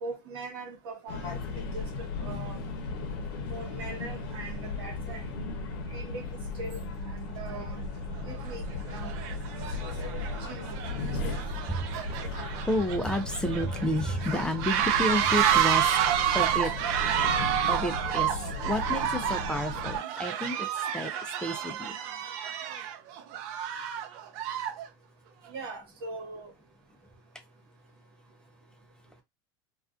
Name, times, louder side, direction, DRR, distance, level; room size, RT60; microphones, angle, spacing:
voice 1, 0.0-2.6 3.5-5.2 5.9-7.8 8.3-8.6 8.9-9.2 10.5-10.8 11.2-11.4 25.5-26.5, right 3 dB, 85° right, 1.0 m, -41 dB
sound 1, 1.1-20.0, left 3 dB, 80° left, 0.7 m, -36 dB
sound 2, 7.5-7.6 8.3-8.5 8.9-24.9, right 10 dB, 65° right, 0.5 m, -30 dB
voice 2, 12.6-15.9 16.3-16.7 17.7-18.3 18.6-22.0, left 1 dB, 5° left, 0.3 m, -30 dB
2.4 x 2.3 x 2.4 m
supercardioid pair, 125°, 12 cm